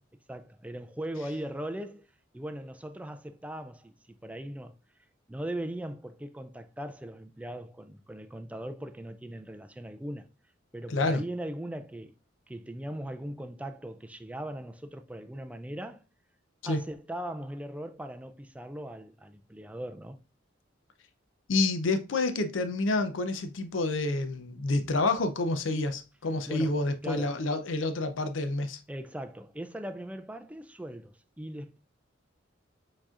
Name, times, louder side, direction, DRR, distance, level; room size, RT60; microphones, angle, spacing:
voice 1, 0.3-2.1 2.3-4.0 4.2-4.7 5.3-10.3 10.7-12.1 12.5-16.0 16.6-20.2 26.5-26.8 27.0-27.4 28.9-31.8, right 1 dB, 5° right, 0.4 m, -39 dB
voice 2, 10.9-11.2 16.6-16.8 21.5-28.8, left 2 dB, 85° left, 0.6 m, -28 dB
4.8 x 4.2 x 2.4 m
head